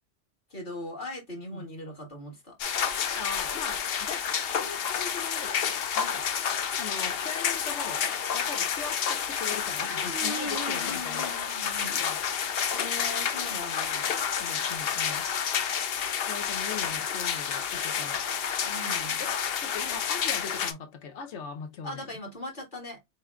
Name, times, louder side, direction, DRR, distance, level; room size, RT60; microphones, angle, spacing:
voice 1, 0.5-2.6 9.9-12.0 12.7-14.1 18.6-19.3 21.8-23.0, left 1 dB, 45° left, 1.9 m, -39 dB
sound 1, 2.6-20.7, left 7 dB, 65° left, 0.8 m, -30 dB
voice 2, 3.1-5.7 6.0-6.3 6.8-8.0 8.3-11.3 12.0-12.2 14.4-15.3 16.3-18.3 19.2-22.1, left 6 dB, 80° left, 1.1 m, -40 dB
4.4 x 3.8 x 2.3 m
omnidirectional pair, 1.2 m